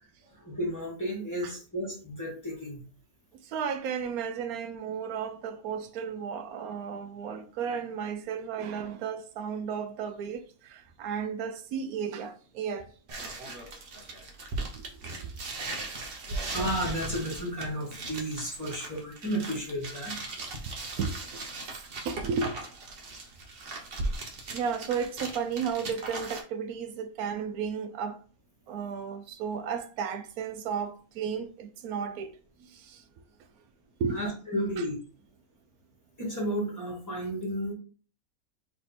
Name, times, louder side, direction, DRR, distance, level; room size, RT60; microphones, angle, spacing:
voice 1, 0.3-2.8 16.5-20.2 34.1-35.0 36.2-37.7, equal, 10° left, 1.7 m, -33 dB
voice 2, 3.5-12.9 13.4-13.5 14.7-14.8 15.1-15.3 15.6-16.0 20.4-20.6 21.0-21.2 22.0-22.6 23.7-23.8 24.5-28.2 28.7-32.3 32.7-33.0 34.0-34.2 34.8-34.9, right 6 dB, 85° right, 1.1 m, -34 dB
sound 1, 13.1-26.4, right 2 dB, 45° right, 1.0 m, -38 dB
3.6 x 3.4 x 4.1 m
omnidirectional pair, 1.5 m